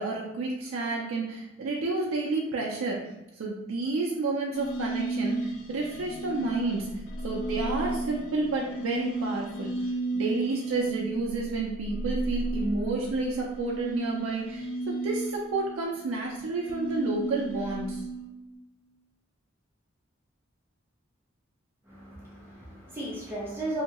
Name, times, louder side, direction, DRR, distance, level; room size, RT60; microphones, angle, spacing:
voice 1, 0.0-3.0 3.4-9.7 10.1-18.0, right 3 dB, 90° right, -2 dB, 0.4 m, -30 dB
sound 1, 4.5-18.5, right 2 dB, 80° left, 0.4 m, -34 dB
voice 2, 21.9-23.8, right 1 dB, 10° right, -5 dB, 0.5 m, -35 dB
2.8 x 2.2 x 2.8 m, 0.93 s
head